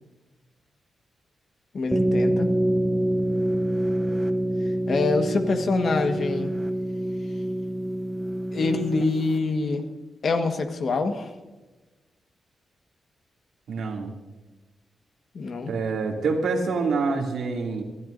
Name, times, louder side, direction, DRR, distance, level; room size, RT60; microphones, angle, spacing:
voice 1, 1.7-2.5 4.9-6.5 8.5-9.8 10.2-11.3 15.3-15.7, left 3 dB, 55° left, 6 dB, 1.4 m, -25 dB
sound 1, 1.9-9.4, right 1 dB, 10° right, 0.7 m, -26 dB
voice 2, 13.7-14.1 15.7-17.8, right 4 dB, 90° right, 0 dB, 2.6 m, -26 dB
27.0 x 12.5 x 2.6 m, 1.2 s
wide cardioid pair, 150°, 0 cm